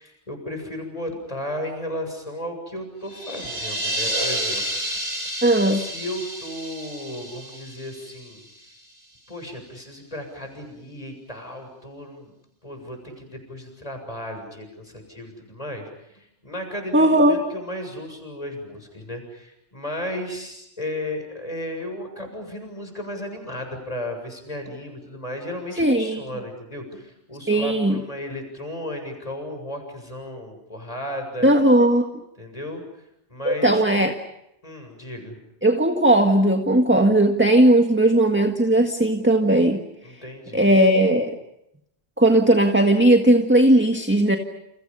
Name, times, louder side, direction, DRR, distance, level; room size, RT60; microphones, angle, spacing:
voice 1, 0.0-4.7 5.2-5.3 5.7-8.4 9.3-12.3 12.6-31.5 32.4-32.8 33.3-33.8 34.6-35.4 40.0-40.7, left 1 dB, 30° left, 5 dB, 7.4 m, -34 dB
sound 1, 3.1-8.7, right 1 dB, 75° right, 7.1 m, -30 dB
voice 2, 5.4-5.8 16.9-17.4 25.8-26.2 27.5-28.0 31.4-32.1 33.4-34.1 35.6-39.8 40.5-41.4 42.2-44.4, right 1 dB, 10° right, 4 dB, 1.7 m, -17 dB
30.0 x 29.5 x 5.6 m, 0.81 s
omnidirectional pair, 1.2 m